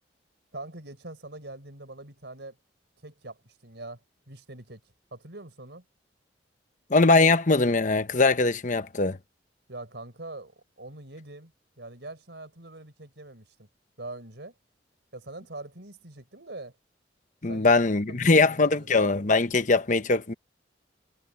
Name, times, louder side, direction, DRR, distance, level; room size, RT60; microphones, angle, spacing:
voice 1, 0.5-2.6 3.0-4.0 4.3-4.8 5.1-5.8 9.7-13.7 14.0-14.5 15.1-16.7 17.5-17.7 18.1-18.9, right 2 dB, 70° right, 4.4 m, -43 dB
voice 2, 6.9-9.2 17.4-20.3, left 3 dB, 45° left, 1.0 m, -21 dB
head